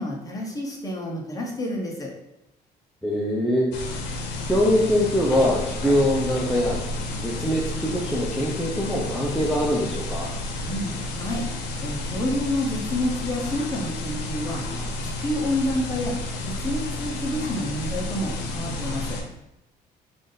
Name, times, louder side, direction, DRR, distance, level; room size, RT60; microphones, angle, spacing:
voice 1, 0.0-2.1 10.6-11.4 11.8-14.6 15.0-16.2 16.5-19.2, left 1 dB, 20° left, -1 dB, 0.9 m, -29 dB
voice 2, 3.0-3.7 4.5-6.8 7.2-10.3, equal, ahead, -4 dB, 0.6 m, -23 dB
sound 1, 3.7-19.2, left 2 dB, 85° left, 0.7 m, -31 dB
3.6 x 2.6 x 3.8 m, 0.89 s
cardioid pair, 110°, 17 cm